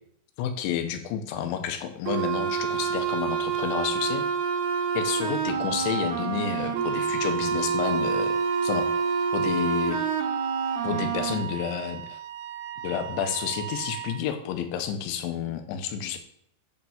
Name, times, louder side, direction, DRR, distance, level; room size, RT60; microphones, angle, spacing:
voice 1, 0.4-4.3 4.9-8.3 8.6-8.9 9.3-10.0 10.8-12.2 12.8-16.2, left 9 dB, 75° left, 7 dB, 3.0 m, -30 dB
sound 1, 2.1-11.3, right 6 dB, 60° right, 2.7 m, -27 dB
Wind instrument woodwind instrument, 4.8-14.3, right 9 dB, 85° right, 3.0 m, -38 dB
7.5 x 5.3 x 7.0 m, 0.70 s
omnidirectional pair, 5.9 m